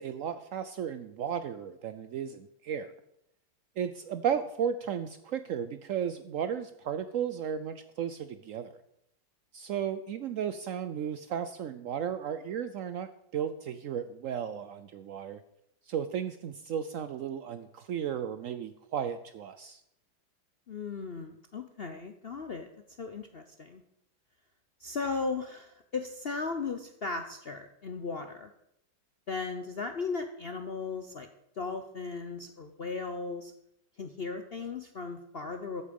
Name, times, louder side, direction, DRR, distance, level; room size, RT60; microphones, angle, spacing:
voice 1, 0.0-2.9 3.8-8.8 9.5-15.4 15.9-19.8, right 8 dB, 85° right, 11 dB, 0.7 m, -34 dB
voice 2, 20.7-22.7 23.0-23.8 24.8-28.5 29.3-31.3 31.6-33.5 34.0-35.8, left 4 dB, 60° left, 7 dB, 0.6 m, -36 dB
14.0 x 8.5 x 5.3 m, 0.76 s
omnidirectional pair, 2.1 m